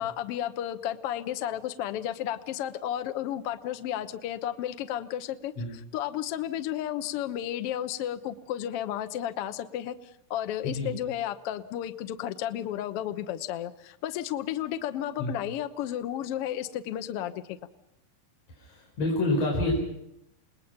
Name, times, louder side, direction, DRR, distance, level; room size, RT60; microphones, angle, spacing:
voice 1, 0.0-5.5 5.9-9.9 10.3-17.6, left 11 dB, 80° left, 9 dB, 1.3 m, -32 dB
voice 2, 18.6-19.8, left 1 dB, 45° left, -2 dB, 5.9 m, -27 dB
29.0 x 19.5 x 5.8 m, 0.81 s
omnidirectional pair, 4.2 m